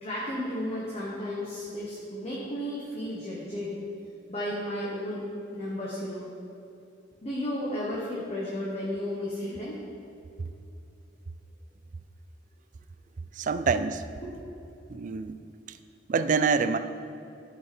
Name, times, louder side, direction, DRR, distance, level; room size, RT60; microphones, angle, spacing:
voice 1, 0.0-3.7 4.3-5.2 5.5-6.3 7.2-9.8, left 1 dB, 35° left, -6 dB, 1.3 m, -33 dB
voice 2, 13.4-14.0 14.9-15.4 16.1-16.8, right 5 dB, 45° right, 11 dB, 0.3 m, -26 dB
12.5 x 5.6 x 4.5 m, 2.8 s
head